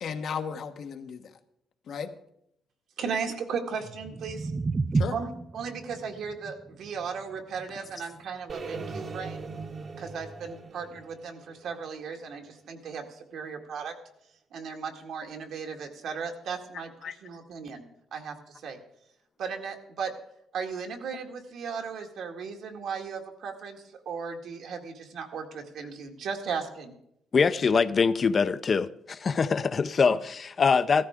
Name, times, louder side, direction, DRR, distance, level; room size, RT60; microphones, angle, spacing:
voice 1, 0.0-1.3 1.9-2.1 4.9-5.2 17.0-17.2 30.1-30.2, left 6 dB, 65° left, 1.1 m, -35 dB
voice 2, 3.0-4.5 5.1-9.5 10.0-14.0 14.5-16.9 17.2-17.9 18.1-18.8 19.4-20.1 20.5-26.9, right 6 dB, 75° right, 1.8 m, -36 dB
sound 1, 3.7-9.9, right 3 dB, 25° right, 0.4 m, -34 dB
sound 2, 8.5-12.5, right 4 dB, 45° right, 1.0 m, -40 dB
voice 3, 27.3-31.1, left 5 dB, 45° left, 0.6 m, -23 dB
15.5 x 13.5 x 3.6 m
cardioid pair, 90°, 0 cm